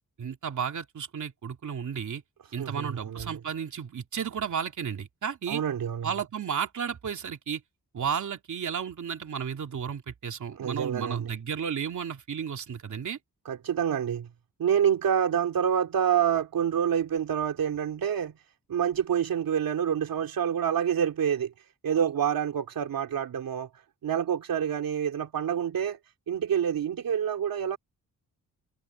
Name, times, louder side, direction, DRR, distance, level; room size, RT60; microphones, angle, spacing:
voice 1, 0.2-2.2 2.5-5.6 6.0-7.6 7.9-13.2, right 7 dB, 60° right, 2.9 m, -33 dB
voice 2, 2.6-3.4 5.5-6.1 10.6-11.3 13.5-14.3 14.6-18.3 18.7-21.5 21.8-23.7 24.0-26.0 26.3-27.8, right 8 dB, 90° right, 2.9 m, -27 dB
wide cardioid pair, 175°, 34 cm